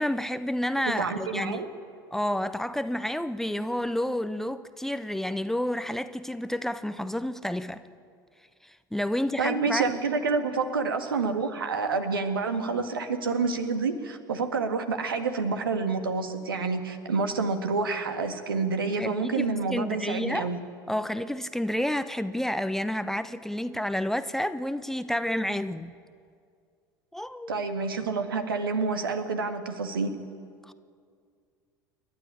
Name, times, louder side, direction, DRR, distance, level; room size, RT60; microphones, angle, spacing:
voice 1, 0.0-1.7 2.1-7.8 8.6-9.9 19.0-20.5 20.9-25.9 27.1-27.6 30.6-30.7, left 1 dB, 5° left, 0.8 m, -30 dB
voice 2, 0.9-1.7 9.4-20.6 27.5-30.1, right 4 dB, 75° right, 1.8 m, -28 dB
29.0 x 12.0 x 10.0 m
figure-of-eight pair, 75°, 12 cm